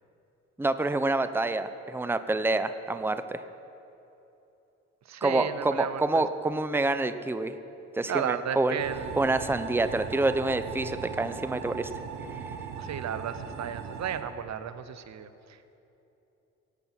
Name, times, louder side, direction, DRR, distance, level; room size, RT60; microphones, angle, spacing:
voice 1, 0.6-3.4 5.2-7.6 7.9-8.8 9.2-11.9, right 2 dB, 5° right, 11 dB, 0.7 m, -27 dB
voice 2, 5.0-6.2 8.1-9.1 12.8-15.8, right 9 dB, 65° right, 12 dB, 0.8 m, -34 dB
sound 1, 8.8-14.2, right 6 dB, 90° right, 1.1 m, -38 dB
16.5 x 8.9 x 5.7 m, 3.0 s
supercardioid pair, 60°, 30 cm